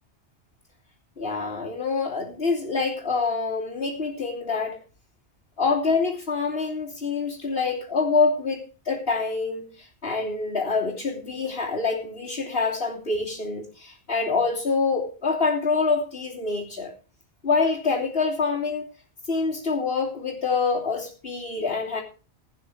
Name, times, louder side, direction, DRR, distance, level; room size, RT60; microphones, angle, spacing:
voice 1, 1.2-4.8 5.6-16.9 17.4-18.9 19.3-22.0, left 4 dB, 55° left, 3.3 m, -26 dB
16.5 x 9.2 x 4.9 m
omnidirectional pair, 1.2 m